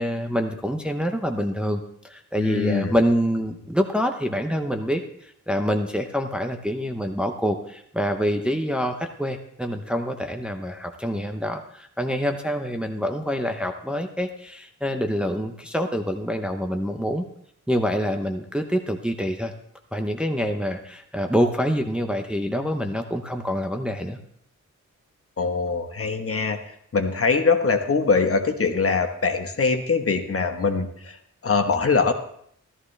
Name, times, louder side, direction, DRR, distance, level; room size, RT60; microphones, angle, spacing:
voice 1, 0.0-17.2 17.7-19.5 19.9-24.2, equal, 5° right, 4 dB, 0.8 m, -26 dB
voice 2, 2.4-2.9 25.4-26.6 26.9-31.2 31.4-32.1, left 4 dB, 45° left, 5 dB, 1.2 m, -22 dB
14.5 x 13.5 x 3.3 m, 0.69 s
wide cardioid pair, 150°, 31 cm